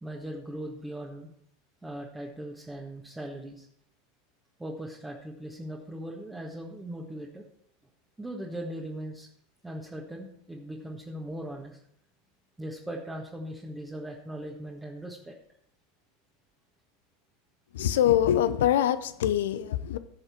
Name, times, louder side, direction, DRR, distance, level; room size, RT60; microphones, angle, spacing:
voice 1, 0.0-1.3 1.8-3.7 4.6-7.4 8.2-9.3 9.6-11.8 12.6-15.3, right 1 dB, 10° right, 1.6 m, -39 dB
voice 2, 17.7-20.0, left 11 dB, 65° left, 0.7 m, -24 dB
16.0 x 6.6 x 4.5 m
figure-of-eight pair, 80°, 0 cm